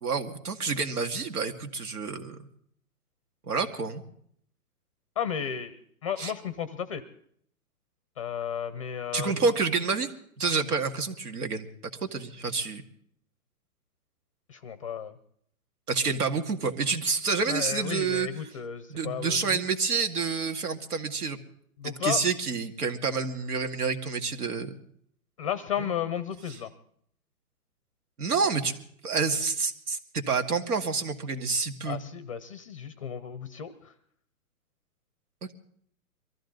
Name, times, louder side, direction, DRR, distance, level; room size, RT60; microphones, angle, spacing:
voice 1, 0.0-2.4 3.5-4.0 6.2-6.3 9.1-10.1 10.4-11.7 12.1-12.8 15.9-18.3 18.9-21.4 21.8-24.7 25.8-25.9 28.2-28.7 29.0-32.0, right 5 dB, 85° right, 5 dB, 2.3 m, -28 dB
voice 2, 5.2-7.0 8.2-9.6 14.5-15.2 17.5-19.6 21.8-22.2 25.4-26.7 31.8-33.9, left 8 dB, 25° left, 14 dB, 0.6 m, -33 dB
23.0 x 14.5 x 4.0 m, 0.64 s
hypercardioid pair, 160°, 45 cm